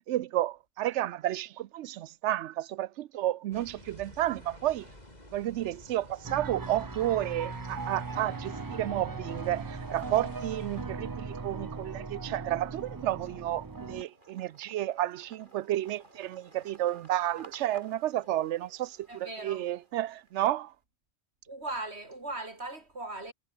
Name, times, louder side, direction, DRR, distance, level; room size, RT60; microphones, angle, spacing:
voice 1, 0.1-4.9 5.3-20.7, right 13 dB, 85° right, 0.9 m, -31 dB
sound 1, 3.5-10.8, left 1 dB, 35° left, 6.3 m, -50 dB
sound 2, 6.2-14.0, right 4 dB, 25° right, 0.6 m, -39 dB
sound 3, 6.2-6.8 7.2-20.7, right 2 dB, 45° right, 4.7 m, -58 dB
voice 2, 19.1-19.7 21.5-23.3, right 2 dB, 70° right, 5.1 m, -38 dB
omnidirectional pair, 1.2 m